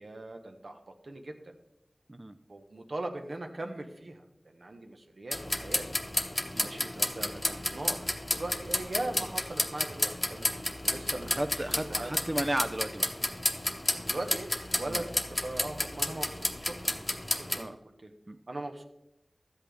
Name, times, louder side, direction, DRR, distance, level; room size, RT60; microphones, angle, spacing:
voice 1, 0.0-1.5 2.5-5.9 6.5-8.0 8.3-10.5 10.8-11.4 11.7-12.1 14.1-17.0 17.3-18.1 18.5-18.8, right 2 dB, 65° right, 4 dB, 1.0 m, -40 dB
sound 1, 5.3-17.6, left 1 dB, 35° left, 0.9 m, -32 dB
voice 2, 11.1-13.1 14.9-15.0 17.6-17.7 18.3-18.4, right 1 dB, 30° right, 10 dB, 0.4 m, -34 dB
12.5 x 8.2 x 3.5 m, 0.84 s
wide cardioid pair, 65°, 0 cm